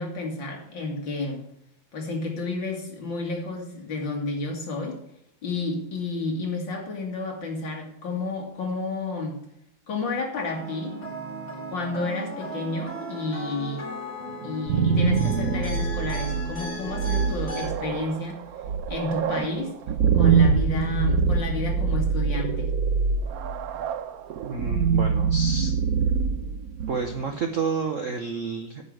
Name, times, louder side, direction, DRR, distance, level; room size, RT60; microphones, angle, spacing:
voice 1, 0.0-1.5 1.9-5.0 5.4-9.4 9.9-10.9 11.7-13.8 14.4-18.4 18.9-19.7 20.1-22.7, left 3 dB, 60° left, 0 dB, 2.8 m, -31 dB
sound 1, 10.4-17.7, equal, 35° left, 5.0 m, -36 dB
sound 2, 14.4-27.3, right 6 dB, 85° right, 0.8 m, -24 dB
voice 2, 24.4-25.7 26.9-28.8, right 5 dB, 60° right, 5 dB, 0.8 m, -30 dB
9.7 x 5.4 x 7.7 m, 0.76 s
omnidirectional pair, 2.3 m